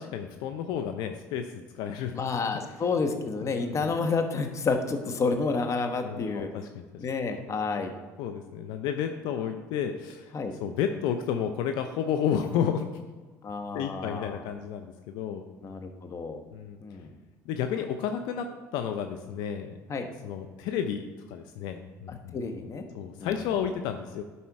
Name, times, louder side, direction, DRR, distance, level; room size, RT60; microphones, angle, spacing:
voice 1, 0.0-1.5 1.8-2.2 3.6-3.9 6.0-6.9 8.2-10.4 10.6-12.8 13.7-15.4 16.5-16.8 17.5-19.8 20.2-22.4 22.9-24.2, left 8 dB, 80° left, 6 dB, 0.6 m, -31 dB
voice 2, 2.2-6.5 7.0-7.9 10.3-10.5 13.4-14.4 15.6-16.4 16.8-17.2 19.9-20.1 22.1-22.8 23.2-23.5, left 4 dB, 45° left, 6 dB, 1.2 m, -30 dB
11.5 x 4.2 x 4.7 m, 1.3 s
supercardioid pair, 80°, 7 cm